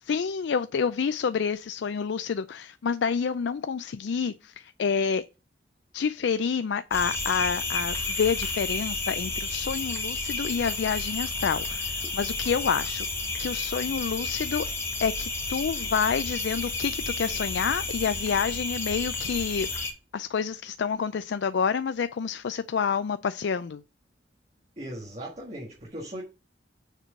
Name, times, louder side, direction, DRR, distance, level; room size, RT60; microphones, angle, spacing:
voice 1, 0.0-5.2 5.9-13.1 13.4-14.7 15.0-19.8 20.1-23.8, left 6 dB, 70° left, 0.4 m, -28 dB
sound 1, 6.9-19.9, left 3 dB, 15° left, 1.6 m, -31 dB
voice 2, 24.8-26.2, right 1 dB, 35° right, 1.6 m, -38 dB
6.6 x 4.6 x 5.2 m
head